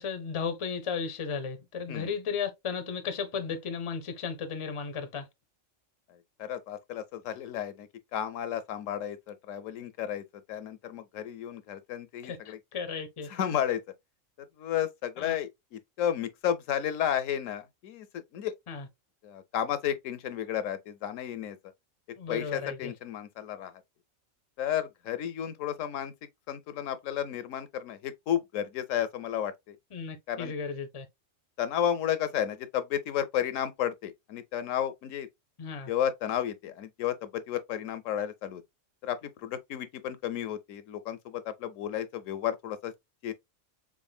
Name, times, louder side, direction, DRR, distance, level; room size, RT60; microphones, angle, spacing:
voice 1, 0.0-5.3 12.2-13.3 15.2-15.3 18.7-18.9 22.2-22.9 29.9-31.1 35.6-35.9, left 6 dB, 35° left, 0.5 m, -35 dB
voice 2, 6.4-12.6 13.3-13.8 14.6-18.1 18.3-18.5 19.2-21.6 22.3-23.7 24.6-26.1 26.5-29.8 30.3-30.5 31.6-35.3 35.9-38.6 39.0-42.9 43.2-43.3, left 10 dB, 75° left, 0.9 m, -32 dB
3.7 x 3.6 x 2.2 m
omnidirectional pair, 1.4 m